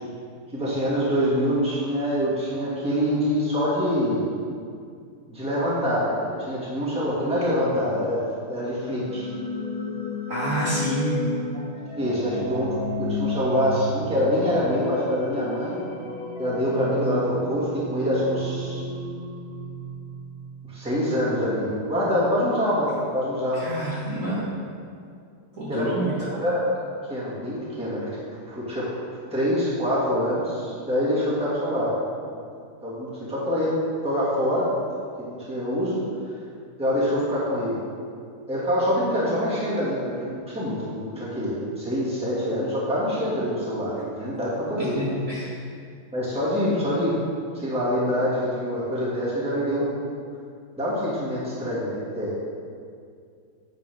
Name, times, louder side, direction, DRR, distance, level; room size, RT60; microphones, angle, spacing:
voice 1, 0.5-4.2 5.3-8.2 8.5-9.3 11.9-15.8 16.4-18.8 20.7-23.7 25.7-25.9 26.4-28.2 28.5-28.9 29.3-31.9 32.8-33.7 34.0-34.7 35.3-36.0 36.8-37.8 38.5-45.0 46.1-47.1 47.5-50.0 50.8-52.3, equal, 5° right, -8 dB, 2.1 m, -25 dB
sound 1, 8.7-20.6, left 1 dB, 65° left, 1.6 m, -33 dB
voice 2, 10.3-11.3 23.5-24.4 25.5-26.1 44.8-45.6, right 1 dB, 40° right, -10 dB, 1.9 m, -28 dB
10.0 x 7.4 x 3.7 m, 2.3 s
omnidirectional pair, 2.4 m